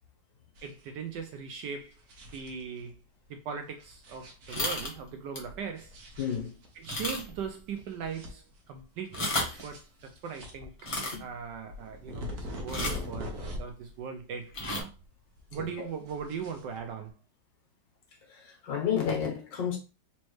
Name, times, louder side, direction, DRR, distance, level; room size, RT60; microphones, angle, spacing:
sound 1, 0.6-1.2 1.8-2.9 3.7-5.1 5.8-6.9 7.3-7.4 7.8-8.8 9.2-13.9 14.2-15.1 15.4-17.1, left 1 dB, 55° right, 1.3 m, -42 dB
voice 1, 0.6-1.9 2.3-3.0 3.3-5.9 6.8-10.7 11.2-13.3 13.6-14.9 15.5-17.1, right 6 dB, 75° right, 1.1 m, -39 dB
sound 2, 4.5-4.9 5.3-5.5 6.0-6.1 6.8-7.5 7.7-7.8 9.0-9.6 10.8-11.2 12.7-13.1 14.5-14.8, left 2 dB, 25° left, 0.7 m, -33 dB
voice 2, 6.2-6.5 11.1-11.2 15.6-15.9 18.3-19.8, left 8 dB, 65° left, 1.8 m, -31 dB
4.2 x 3.1 x 3.1 m
omnidirectional pair, 2.2 m